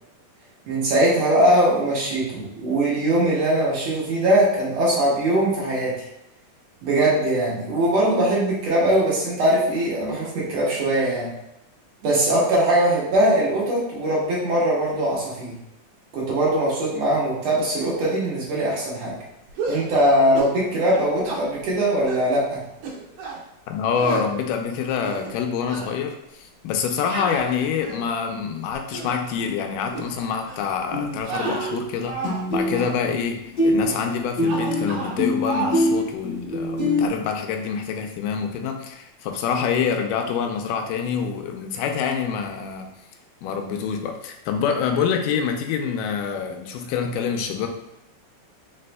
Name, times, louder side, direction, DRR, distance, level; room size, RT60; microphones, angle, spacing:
voice 1, 0.7-5.9 6.8-11.3 12.0-15.5 16.1-19.2 19.7-22.6, right 1 dB, 60° right, -6 dB, 2.2 m, -21 dB
sound 1, 19.5-19.9 20.3-20.6 20.9-21.4 22.0-22.3 22.8-23.4 24.0-24.3 24.8-25.4 25.7-25.9 27.1-28.2 28.7-29.2 29.9-30.1 30.5-30.7 31.2-32.4 32.7-33.0 33.9-34.2 34.4-35.2 35.4-35.8, right 3 dB, 75° right, 2.6 m, -31 dB
voice 2, 23.7-33.4 33.6-42.9 43.4-47.7, left 6 dB, 80° left, 3 dB, 2.1 m, -26 dB
sound 2, 29.3-29.5 30.9-31.2 31.4-33.3 33.6-37.1, left 1 dB, 45° left, 1.2 m, -24 dB
5.1 x 4.1 x 2.2 m, 0.85 s
omnidirectional pair, 3.9 m